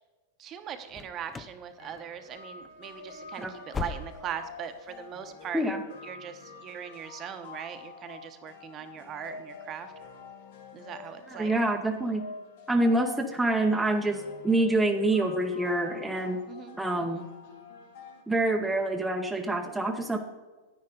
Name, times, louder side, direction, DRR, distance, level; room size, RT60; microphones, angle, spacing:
voice 1, 0.4-9.9 10.7-11.5 16.5-17.2, right 8 dB, 30° right, 8 dB, 0.9 m, -40 dB
sound 1, 0.9-1.6 1.9-2.3 2.6-2.8 3.2-4.5 4.8-4.9 5.4-5.5, left 6 dB, 15° left, 0.4 m, -39 dB
sound 2, 1.8-18.2, left 4 dB, 70° left, 1.9 m, -47 dB
voice 2, 11.3-12.2 12.7-16.4 16.8-17.2 18.3-20.2, right 2 dB, 5° right, 2 dB, 0.8 m, -26 dB
9.8 x 9.5 x 3.9 m, 1.3 s
supercardioid pair, 140°, 0 cm